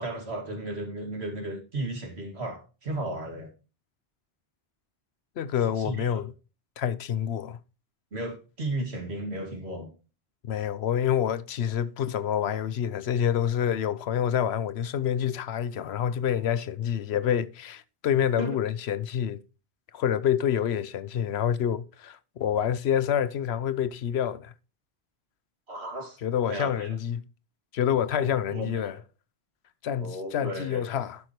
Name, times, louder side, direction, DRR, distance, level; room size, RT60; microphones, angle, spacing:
voice 1, 0.0-3.5 5.8-6.1 8.1-9.9 18.4-18.6 25.7-26.2 26.5-26.9 28.2-29.0 30.0-30.8, right 1 dB, 85° right, 2.7 m, -34 dB
voice 2, 5.4-6.3 6.8-7.6 10.4-19.4 19.9-24.5 26.2-27.2 27.7-28.9 29.8-31.2, left 9 dB, 85° left, 1.0 m, -27 dB
12.0 x 5.9 x 3.1 m
omnidirectional pair, 1.1 m